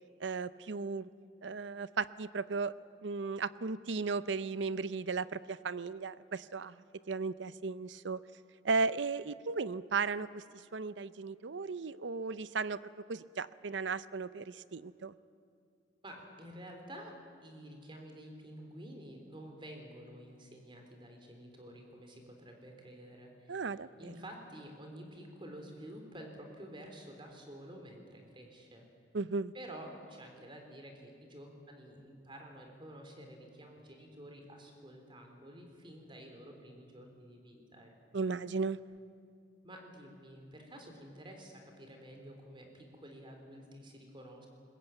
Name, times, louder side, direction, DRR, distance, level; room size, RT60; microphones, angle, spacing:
voice 1, 0.2-1.1 1.4-2.7 3.0-6.7 7.1-8.2 8.6-10.4 10.7-12.8 13.1-15.1 23.5-23.9 29.1-29.5 38.1-38.8, right 4 dB, 65° right, 16 dB, 0.6 m, -35 dB
voice 2, 16.0-28.9 29.5-38.2 39.6-44.5, right 1 dB, 25° right, 3 dB, 3.7 m, -50 dB
21.5 x 20.0 x 9.1 m, 2.4 s
head